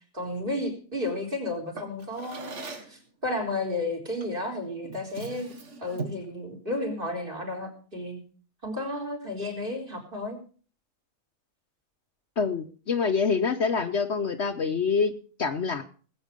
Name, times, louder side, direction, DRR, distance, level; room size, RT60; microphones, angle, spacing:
voice 1, 0.1-5.5 5.8-8.2 8.6-10.4, left 2 dB, 35° right, 3 dB, 4.6 m, -32 dB
Drawer open or close, 1.7-3.0 4.2-4.4 4.8-6.3, right 3 dB, 60° right, 1.9 m, -39 dB
voice 2, 12.4-15.1 15.4-15.8, left 5 dB, 55° left, 7 dB, 1.2 m, -26 dB
19.5 x 8.3 x 5.2 m, 0.40 s
omnidirectional pair, 1.4 m